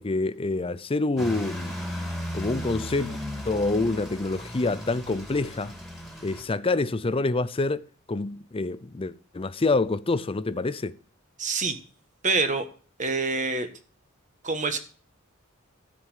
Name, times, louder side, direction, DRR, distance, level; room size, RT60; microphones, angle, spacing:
voice 1, 0.0-1.8 2.3-3.2 3.4-5.8 6.2-10.9, left 3 dB, 25° left, 0.5 m, -27 dB
sound 1, 1.2-6.4, equal, ahead, 2.5 m, -36 dB
voice 2, 11.4-11.8 12.2-12.7 13.0-13.7 14.4-14.8, right 4 dB, 40° right, 1.5 m, -26 dB
13.0 x 5.2 x 7.4 m
head